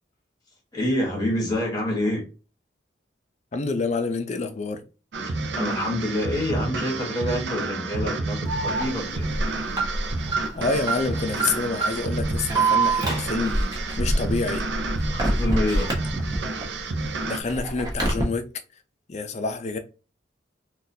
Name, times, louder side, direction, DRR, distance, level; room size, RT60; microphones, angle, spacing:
voice 1, 0.7-2.3 5.2-9.3 15.1-15.9, left 1 dB, 20° left, 1.2 m, -27 dB
voice 2, 3.5-4.8 10.6-13.6 14.0-14.6 17.2-18.5 19.1-19.8, left 3 dB, 35° left, 0.4 m, -27 dB
sound 1, 5.1-17.4, right 3 dB, 65° right, 0.5 m, -30 dB
Alarm, 8.5-16.6 17.0-18.2, right 2 dB, 20° right, 0.9 m, -26 dB
3.9 x 2.3 x 2.7 m
head